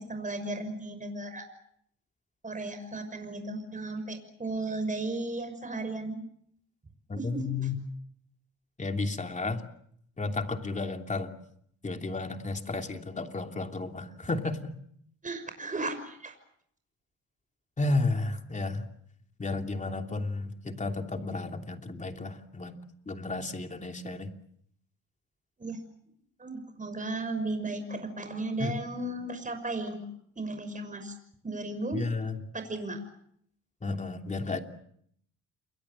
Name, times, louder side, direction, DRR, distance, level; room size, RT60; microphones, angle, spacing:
voice 1, 0.0-1.4 2.4-6.2 7.2-7.5 15.2-16.3 25.6-25.8 26.4-30.0 30.4-31.2 31.4-32.0 32.5-33.0, right 2 dB, 25° right, 7 dB, 6.0 m, -35 dB
voice 2, 7.1-7.7 8.8-9.6 10.2-11.3 11.8-14.7 17.8-18.9 19.4-22.7 23.1-24.3 28.6-28.7 31.9-32.4 33.8-34.6, left 3 dB, 25° left, 5 dB, 3.0 m, -32 dB
29.0 x 22.5 x 7.5 m, 0.69 s
cardioid pair, 90°, 30 cm